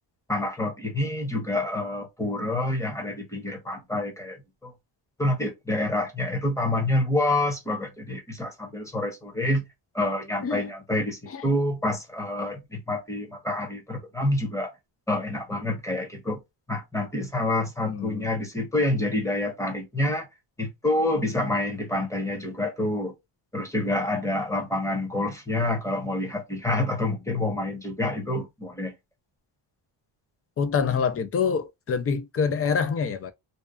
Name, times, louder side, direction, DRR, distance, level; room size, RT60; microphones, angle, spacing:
voice 1, 0.3-4.4 4.6-4.7 5.2-9.6 9.9-14.7 15.1-16.4 16.7-20.3 20.6-23.1 23.5-28.9, left 1 dB, 5° left, 0.9 m, -27 dB
voice 2, 17.8-18.4 30.6-33.3, left 6 dB, 30° left, 0.4 m, -26 dB
2.8 x 2.2 x 2.3 m
cardioid pair, 110°, 48 cm